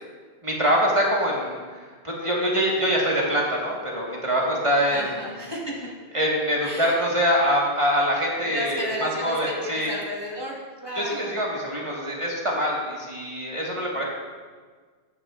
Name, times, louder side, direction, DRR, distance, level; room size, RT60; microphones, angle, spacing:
voice 1, 0.4-1.6 2.0-5.1 6.1-9.9 10.9-14.0, equal, 30° right, -3 dB, 1.6 m, -24 dB
voice 2, 4.9-5.9 6.6-7.1 8.4-11.4 14.0-14.1, equal, 25° left, -3 dB, 1.1 m, -33 dB
14.0 x 8.5 x 2.4 m, 1.5 s
omnidirectional pair, 1.1 m